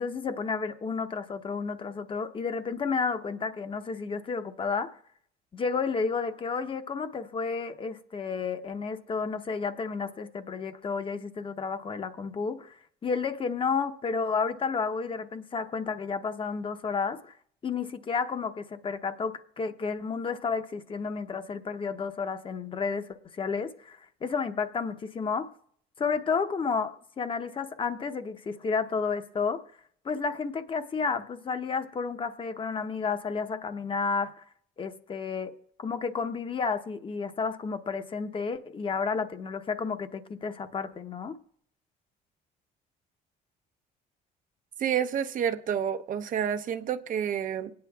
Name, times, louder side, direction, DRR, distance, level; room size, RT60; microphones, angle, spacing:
voice 1, 0.0-5.0 5.5-17.3 17.6-23.1 23.3-25.5 26.0-29.6 30.0-34.4 34.8-35.5 35.8-41.4, left 5 dB, 30° left, 0.8 m, -31 dB
voice 2, 44.8-47.7, right 8 dB, 50° right, 0.8 m, -29 dB
25.5 x 9.5 x 2.3 m
cardioid pair, 110°, 17 cm